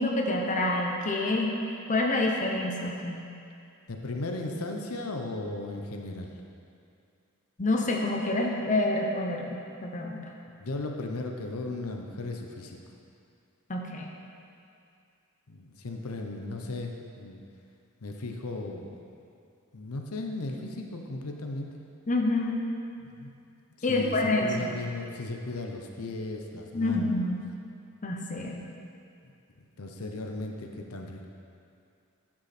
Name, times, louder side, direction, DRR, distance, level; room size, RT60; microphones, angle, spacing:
voice 1, 0.0-1.5 1.9-3.2 7.6-10.2 13.7-14.1 22.1-22.7 23.8-24.7 26.7-27.4 28.0-28.6, left 2 dB, 35° left, 0 dB, 0.8 m, -27 dB
voice 2, 3.9-6.4 10.6-12.8 15.5-17.4 18.0-19.0 19.7-21.7 23.0-23.3 23.8-24.2 24.4-27.3 29.8-31.3, left 2 dB, 85° left, 2 dB, 0.8 m, -36 dB
11.5 x 6.2 x 4.3 m, 2.5 s
head